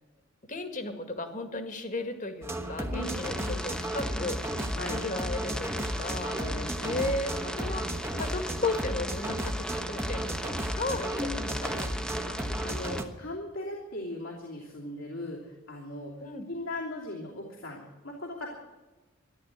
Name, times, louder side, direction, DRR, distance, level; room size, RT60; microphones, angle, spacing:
voice 1, 0.5-3.3 3.6-4.4 4.9-6.4 6.8-7.9 8.1-11.9 16.2-16.5, left 2 dB, 40° left, 8 dB, 1.9 m, -35 dB
sound 1, 2.4-13.0, equal, 15° right, 1.1 m, -34 dB
voice 2, 2.9-3.8 4.7-5.0 6.3-7.3 7.6-7.9 12.3-12.4 12.6-18.5, left 1 dB, 70° left, -3 dB, 3.0 m, -39 dB
sound 2, 3.0-13.0, equal, 5° left, 1.1 m, -39 dB
13.5 x 11.5 x 8.9 m, 1.1 s
head